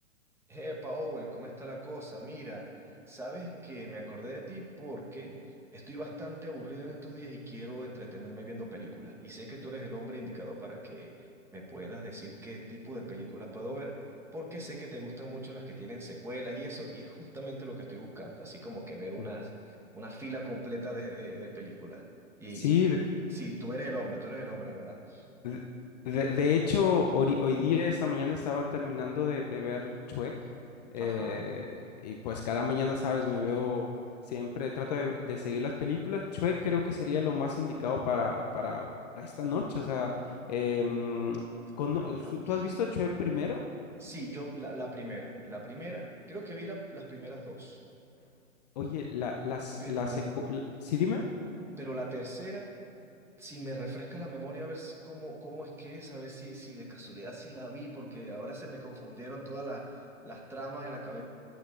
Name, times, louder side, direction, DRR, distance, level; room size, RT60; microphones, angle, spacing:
voice 1, 0.5-5.3 5.7-22.0 22.4-22.9 23.3-25.3 31.0-31.5 41.7-42.6 44.0-47.8 49.8-50.2 51.8-52.7 53.4-61.2, right 1 dB, 5° right, -2 dB, 1.2 m, -41 dB
voice 2, 22.5-23.0 25.4-25.6 26.0-30.3 30.9-33.9 34.2-38.9 39.2-40.1 40.5-41.4 41.8-43.6 48.8-50.2 50.5-51.2, left 6 dB, 30° left, 1 dB, 0.6 m, -30 dB
20.0 x 9.0 x 2.5 m, 2.7 s
hypercardioid pair, 130°, 40 cm